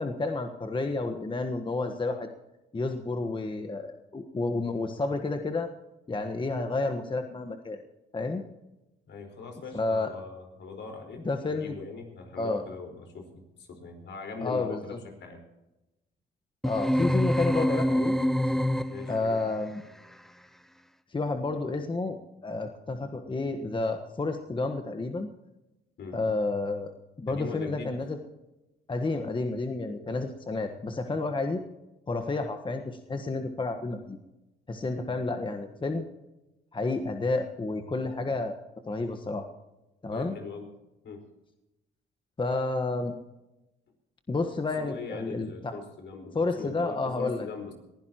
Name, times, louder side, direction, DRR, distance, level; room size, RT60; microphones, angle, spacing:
voice 1, 0.0-2.3 2.7-5.7 6.1-7.8 8.1-8.4 9.7-10.1 11.2-11.8 12.4-12.6 14.4-15.0 16.6-18.2 19.1-19.8 21.1-22.2 22.4-25.3 26.1-28.2 28.9-31.6 32.1-34.2 34.7-36.1 36.7-38.6 38.9-39.5 40.0-40.4 42.4-43.1 44.3-45.7 46.3-47.5, left 3 dB, 25° left, 5 dB, 1.4 m, -30 dB
voice 2, 9.1-15.4 18.9-19.4 26.0-26.2 27.3-28.0 40.1-40.7 41.0-41.3 44.8-47.7, left 4 dB, 65° left, 4 dB, 4.7 m, -41 dB
sound 1, 16.6-19.3, equal, ahead, 0.7 m, -26 dB
21.5 x 15.5 x 3.0 m, 0.97 s
cardioid pair, 90°, 20 cm